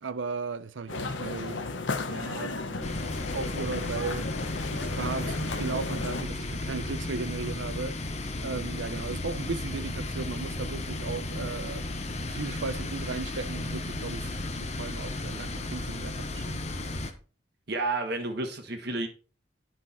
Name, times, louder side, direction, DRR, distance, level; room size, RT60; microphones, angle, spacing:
voice 1, 0.0-1.6 2.1-2.9 3.3-4.3 4.7-8.0 8.4-11.9 12.3-16.7, right 4 dB, 90° right, 0.6 m, -36 dB
sound 1, 0.9-6.2, left 3 dB, 85° left, 1.2 m, -34 dB
sound 2, 2.8-17.1, left 2 dB, 35° left, 1.1 m, -34 dB
voice 2, 17.7-19.1, right 2 dB, 60° right, 1.5 m, -30 dB
9.6 x 6.1 x 4.3 m
head